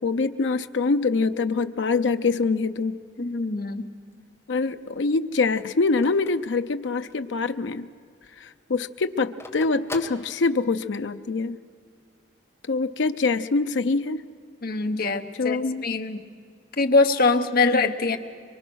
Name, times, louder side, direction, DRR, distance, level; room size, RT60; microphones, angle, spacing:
voice 1, 0.0-3.0 4.5-7.9 8.4-11.6 12.7-14.2 15.4-15.8 17.6-17.9, left 4 dB, 80° left, 9 dB, 0.5 m, -24 dB
voice 2, 3.2-3.8 14.6-16.2 16.8-18.2, left 3 dB, 55° left, 7 dB, 1.1 m, -23 dB
Telephone, 4.0-7.4 7.8-7.9 8.1-11.0, left 2 dB, 15° left, 1.3 m, -42 dB
23.5 x 23.5 x 6.3 m, 2.2 s
head